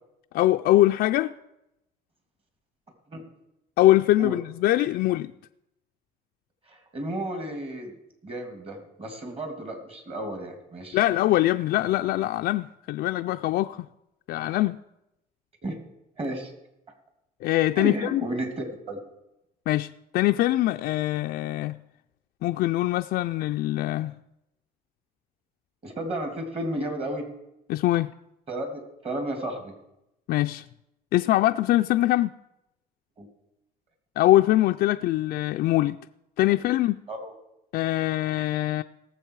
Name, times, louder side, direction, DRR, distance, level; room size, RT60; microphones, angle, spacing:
voice 1, 0.3-1.3 3.8-5.3 10.9-13.9 14.3-14.8 17.4-18.2 19.7-21.8 22.4-24.1 27.7-28.1 30.3-30.6 31.1-32.3 34.2-36.0 36.4-37.0 37.7-38.8, left 15 dB, 70° left, 0.4 m, -23 dB
voice 2, 6.7-7.9 8.2-11.0 15.6-15.8 16.2-16.5 17.8-19.0 25.8-27.3 28.5-29.7 33.2-33.3 37.1-37.3, right 1 dB, 35° right, 2.6 m, -33 dB
18.0 x 7.4 x 4.7 m
cardioid pair, 110°, 17 cm